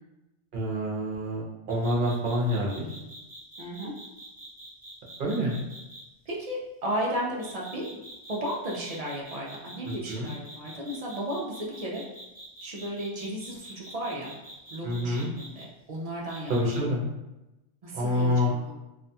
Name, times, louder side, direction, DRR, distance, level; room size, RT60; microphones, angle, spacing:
voice 1, 0.5-1.4 1.7-2.9 5.2-5.5 9.8-10.3 14.8-15.3 16.5-17.0 17.9-18.5, left 1 dB, 50° right, -3 dB, 0.7 m, -27 dB
sound 1, 1.7-6.0 7.4-15.6 16.3-16.8, right 1 dB, 10° right, 0.6 m, -45 dB
voice 2, 3.6-3.9 6.3-8.0 8.3-12.0 12.6-14.3 14.7-16.7 17.8-18.8, right 1 dB, 65° right, -3 dB, 0.3 m, -34 dB
2.6 x 2.2 x 2.7 m, 0.97 s
omnidirectional pair, 1.2 m